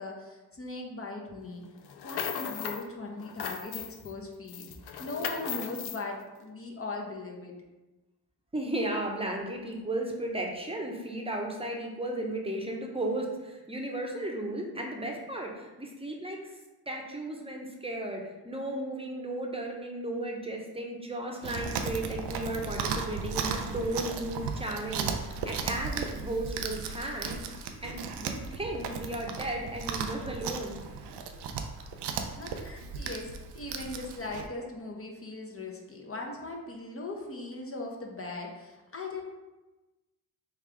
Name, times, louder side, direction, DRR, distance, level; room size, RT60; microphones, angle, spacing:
voice 1, 0.0-1.6 2.0-4.7 5.0-7.5 32.3-39.2, left 2 dB, 35° left, 0 dB, 1.0 m, -39 dB
sound 1, 1.8-2.9 3.2-4.1 4.5-6.0, left 8 dB, 70° left, 0.5 m, -37 dB
voice 2, 8.5-16.4 16.9-27.4 27.8-30.8, right 1 dB, 15° right, 0 dB, 0.9 m, -35 dB
Chewing mastication, 21.4-34.5, right 5 dB, 80° right, 0.5 m, -36 dB
3.6 x 3.4 x 3.4 m, 1.1 s
supercardioid pair, 45°, 40 cm